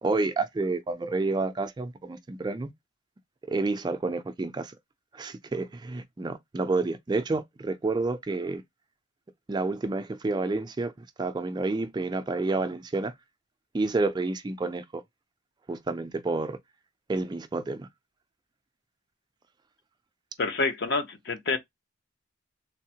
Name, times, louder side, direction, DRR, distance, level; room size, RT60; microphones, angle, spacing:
voice 1, 0.0-2.7 3.5-4.7 5.1-8.6 9.5-10.9 11.2-13.1 13.7-15.0 15.7-16.6 17.1-17.9, right 3 dB, 20° right, 0.3 m, -29 dB
voice 2, 20.4-21.6, left 3 dB, 60° left, 0.7 m, -27 dB
3.5 x 2.0 x 2.7 m
head